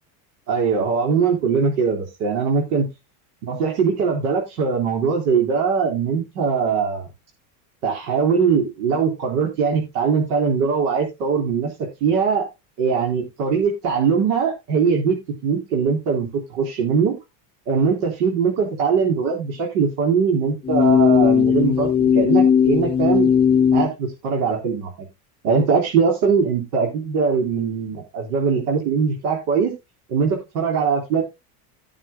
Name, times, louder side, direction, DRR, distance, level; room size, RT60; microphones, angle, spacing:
voice 1, 0.5-2.8 3.4-7.1 7.8-11.7 12.0-12.5 12.8-15.2 15.4-17.1 17.7-23.3 23.7-25.1 25.4-29.7 30.1-31.2, right 5 dB, 85° right, 0 dB, 4.1 m, -21 dB
sound 1, 20.6-23.9, left 7 dB, 15° left, 0.5 m, -17 dB
18.5 x 7.3 x 2.2 m, 0.24 s
cardioid pair, 155°, 44 cm